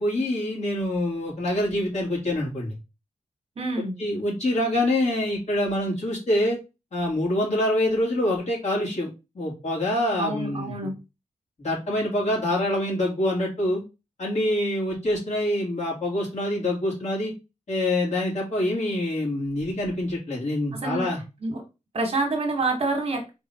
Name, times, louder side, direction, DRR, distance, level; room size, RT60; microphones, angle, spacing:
voice 1, 0.0-2.8 4.0-6.6 6.9-10.9 11.6-13.8 14.2-17.3 17.7-21.2, left 1 dB, 65° left, 2.4 m, -25 dB
voice 2, 3.6-4.0 10.2-11.0 20.7-21.1 21.4-21.6 21.9-23.3, right 2 dB, 50° right, 1.1 m, -27 dB
3.9 x 3.5 x 2.7 m
wide cardioid pair, 120°, 13 cm